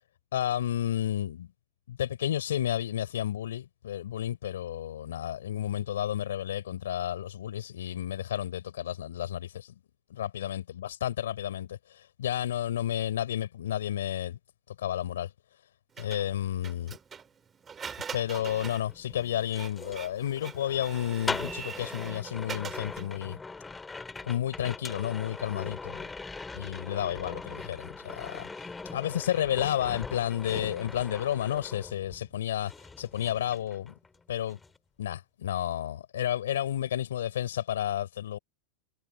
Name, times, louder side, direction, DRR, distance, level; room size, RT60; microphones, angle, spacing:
voice 1, 0.3-1.5 1.9-9.7 10.1-14.4 14.8-15.3 16.0-17.0 18.1-23.4 24.2-26.1 26.5-33.9 34.3-34.6 35.0-38.4, left 11 dB, 85° left, 4.1 m, -31 dB
Printer, 16.0-23.2, right 6 dB, 25° right, 3.8 m, -43 dB
sound 1, 18.2-32.4 32.7-34.2 34.4-34.8, left 3 dB, 15° left, 3.2 m, -41 dB
hypercardioid pair, 110°, 0 cm